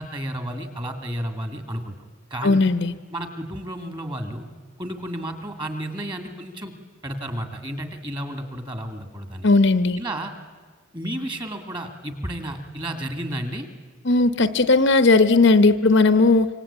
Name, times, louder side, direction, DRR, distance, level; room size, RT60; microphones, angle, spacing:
voice 1, 0.0-1.9 2.3-2.7 3.1-4.5 4.8-6.7 7.0-9.5 10.0-10.3 10.9-13.7, right 1 dB, 20° right, 6 dB, 2.4 m, -32 dB
voice 2, 2.4-2.9 9.4-10.0 14.0-16.5, left 3 dB, 55° left, 11 dB, 0.9 m, -17 dB
26.0 x 24.5 x 8.8 m, 1.5 s
head